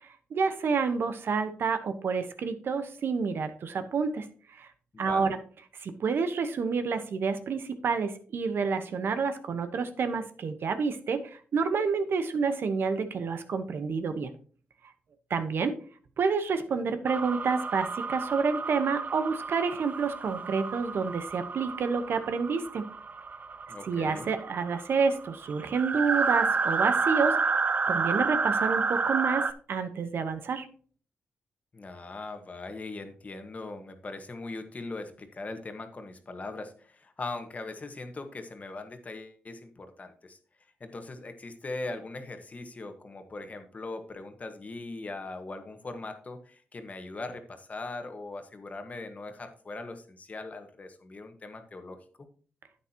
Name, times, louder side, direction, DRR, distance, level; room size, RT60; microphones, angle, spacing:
voice 1, 0.3-4.3 4.5-4.7 5.0-5.4 5.8-14.3 15.3-15.8 16.2-22.9 23.9-30.7, right 5 dB, 65° right, 9 dB, 1.1 m, -29 dB
voice 2, 4.9-5.3 23.7-24.3 31.7-40.4 40.8-52.0, left 2 dB, 35° left, 7 dB, 1.5 m, -40 dB
sound 1, 17.1-29.5, right 4 dB, 45° right, 0.6 m, -30 dB
9.8 x 8.6 x 2.9 m, 0.42 s
cardioid pair, 85°, 4 cm